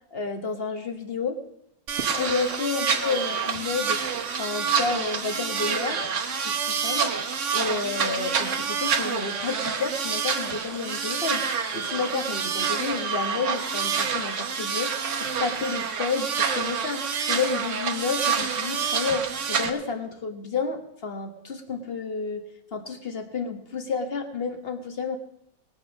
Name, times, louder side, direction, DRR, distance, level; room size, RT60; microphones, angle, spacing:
voice 1, 0.1-1.4 2.2-4.0 4.4-6.0 6.5-7.1 7.5-11.5 11.7-22.4 22.7-25.2, left 4 dB, 35° left, 6 dB, 1.4 m, -30 dB
sound 1, 1.9-19.7, right 6 dB, 45° right, 1.2 m, -27 dB
20.0 x 7.0 x 6.3 m, 0.80 s
omnidirectional pair, 2.0 m